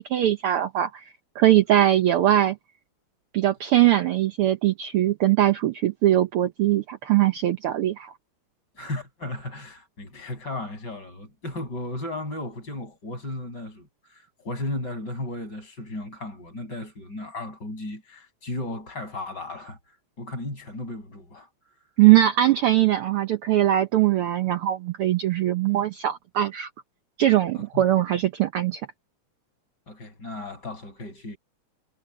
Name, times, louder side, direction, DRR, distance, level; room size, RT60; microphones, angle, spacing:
voice 1, 0.1-2.6 3.3-8.1 22.0-26.7 27.2-28.8, right 13 dB, 75° right, 1.3 m, -21 dB
voice 2, 8.8-21.5 27.5-27.9 29.9-31.4, left 2 dB, 35° left, 7.5 m, -35 dB
omnidirectional pair, 3.4 m